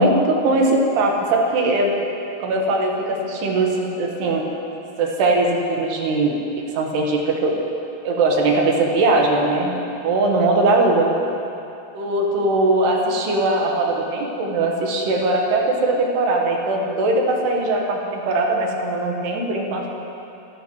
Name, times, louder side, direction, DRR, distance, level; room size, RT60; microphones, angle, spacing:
voice 1, 0.0-2.1 2.4-4.5 5.0-7.5 8.0-11.1 11.9-19.9, right 2 dB, 75° right, 0 dB, 3.5 m, -20 dB
26.5 x 13.5 x 3.2 m, 2.9 s
omnidirectional pair, 5.0 m